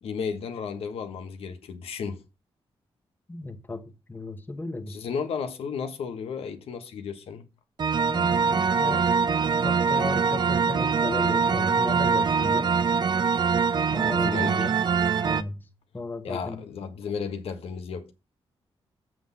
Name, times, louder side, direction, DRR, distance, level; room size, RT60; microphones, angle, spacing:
voice 1, 0.0-2.2 4.9-7.5 14.1-14.7 16.2-18.1, left 6 dB, 80° left, 1.3 m, -34 dB
voice 2, 3.3-3.8 4.1-5.0 8.1-9.1 9.6-12.7 13.9-14.8 15.2-15.7 15.9-16.6, left 2 dB, 20° left, 1.2 m, -35 dB
sound 1, 7.8-15.4, right 5 dB, 50° right, 0.6 m, -23 dB
7.7 x 6.1 x 5.5 m
wide cardioid pair, 115°, 10 cm